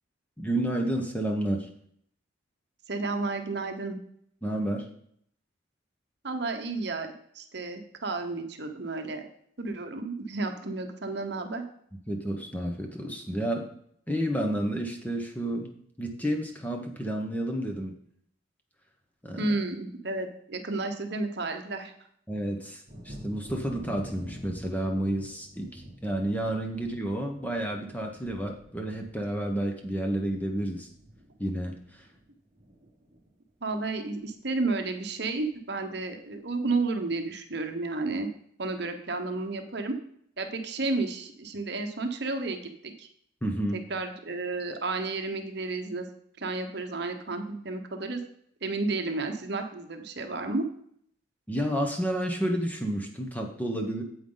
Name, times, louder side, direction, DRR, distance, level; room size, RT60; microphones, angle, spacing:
voice 1, 0.4-1.6 4.4-4.9 12.1-13.7 14.1-15.7 16.0-17.9 19.2-19.6 22.3-30.9 31.4-31.8 43.4-43.8 51.5-54.0, right 1 dB, 10° left, 2 dB, 1.0 m, -30 dB
voice 2, 2.9-4.0 6.2-7.1 7.3-9.2 9.6-11.6 19.4-21.9 33.6-38.3 38.6-39.9 40.4-43.1 43.7-46.1 46.4-48.2 48.6-50.6, right 3 dB, 55° right, 6 dB, 1.0 m, -32 dB
Thunder, 22.9-32.3 32.6-33.3 33.7-33.8 34.2-34.4, equal, 35° right, 1.3 m, -48 dB
9.1 x 7.9 x 3.9 m, 0.66 s
head